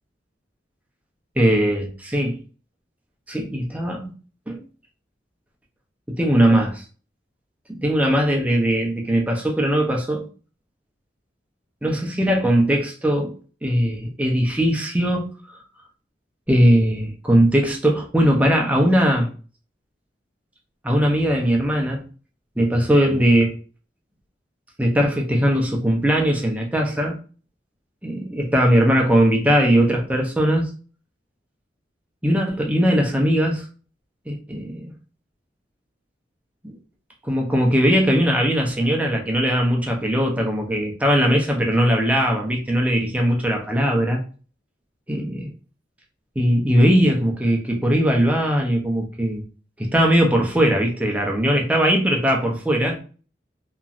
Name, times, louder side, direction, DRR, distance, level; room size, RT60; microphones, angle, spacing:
voice 1, 1.4-2.4 3.3-4.1 4.5-4.6 6.1-6.8 7.7-10.2 11.8-13.3 13.6-15.3 16.5-19.3 20.8-22.0 22.6-23.6 24.8-27.1 28.0-30.7 32.2-33.6 34.3-34.9 36.6-36.7 37.2-44.2 45.1-45.5 46.4-49.4 49.8-53.0, equal, 10° right, 0.5 m, -19 dB
3.0 x 2.5 x 2.4 m
head